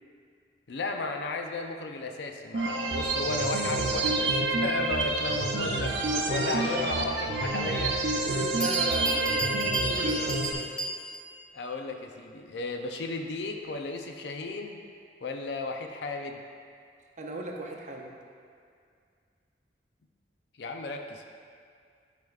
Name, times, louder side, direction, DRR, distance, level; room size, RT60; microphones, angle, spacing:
voice 1, 0.7-5.9 6.3-8.0 11.5-14.8 15.2-16.4 20.6-21.2, left 3 dB, 70° left, 4 dB, 0.5 m, -34 dB
sound 1, 2.5-10.5, right 2 dB, 90° right, 0.6 m, -28 dB
voice 2, 6.1-6.8 8.2-10.7 17.2-18.1, right 2 dB, 45° right, 0 dB, 0.6 m, -36 dB
Bell, 8.2-8.3 8.6-11.4, right 1 dB, 5° left, 0.4 m, -35 dB
9.4 x 5.0 x 2.4 m, 2.3 s
head